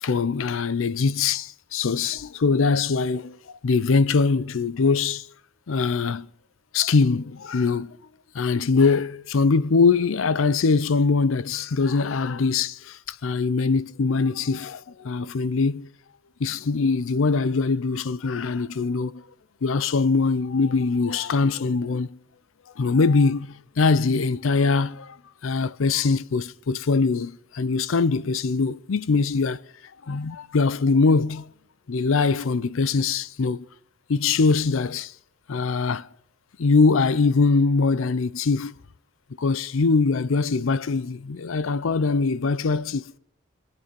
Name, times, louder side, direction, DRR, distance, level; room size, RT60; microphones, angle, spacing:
voice 1, 0.0-3.4 3.6-5.3 5.7-6.3 6.7-8.0 8.3-15.9 16.4-19.2 19.6-22.2 22.8-25.2 25.4-29.6 30.0-31.5 31.9-33.7 34.1-35.1 35.5-36.1 36.6-38.7 39.4-43.1, left 4 dB, 70° left, 0.5 m, -22 dB
26.0 x 9.0 x 5.2 m
head